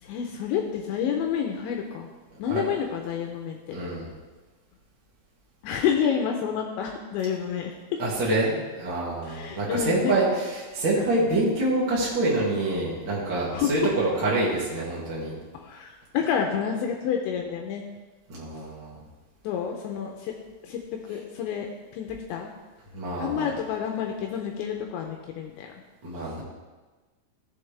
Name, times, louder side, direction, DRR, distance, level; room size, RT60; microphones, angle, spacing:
voice 1, 0.0-2.1 2.4-3.8 5.6-7.8 9.2-10.2 11.0-11.1 13.5-13.9 15.5-17.8 19.4-20.3 20.6-21.7 21.9-22.5 23.2-25.8, left 8 dB, 80° left, 2 dB, 2.7 m, -29 dB
voice 2, 3.7-4.1 8.0-15.3 18.3-18.9 22.9-23.5 26.0-26.4, right 2 dB, 50° right, -6 dB, 1.3 m, -26 dB
15.5 x 7.1 x 3.3 m, 1.3 s
omnidirectional pair, 5.8 m